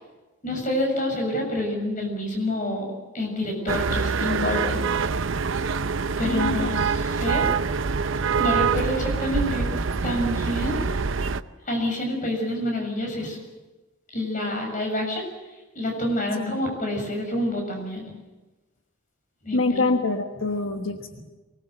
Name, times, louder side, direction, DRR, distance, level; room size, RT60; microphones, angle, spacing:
voice 1, 0.4-2.9 3.1-4.9 5.6-5.7 6.2-7.4 7.7-7.8 8.4-9.6 10.0-11.0 11.6-13.4 14.1-15.2 15.7-18.0 19.4-19.8, left 1 dB, 40° left, 2 dB, 6.9 m, -28 dB
sound 1, 3.7-11.4, right 5 dB, 70° right, 0.7 m, -25 dB
voice 2, 6.2-6.7 16.3-16.6 19.5-21.2, left 3 dB, 75° left, 5 dB, 1.3 m, -25 dB
24.0 x 19.5 x 8.0 m, 1.1 s
head